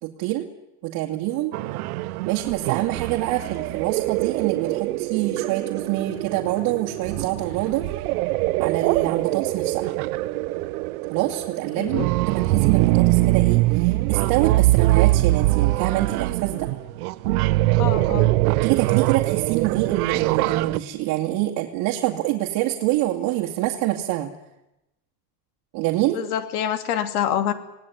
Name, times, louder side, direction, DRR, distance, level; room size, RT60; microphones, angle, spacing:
voice 1, 0.0-0.5 0.8-1.6 2.2-7.9 8.6-9.8 11.1-16.7 18.6-24.3 25.7-26.2, right 15 dB, 50° right, -1 dB, 2.4 m, -26 dB
sound 1, 1.5-20.8, right 19 dB, 90° right, 1.1 m, -23 dB
voice 2, 17.8-18.3 26.1-27.5, left 10 dB, 85° left, 9 dB, 3.0 m, -26 dB
27.5 x 18.5 x 9.4 m, 0.93 s
cardioid pair, 170°, 43 cm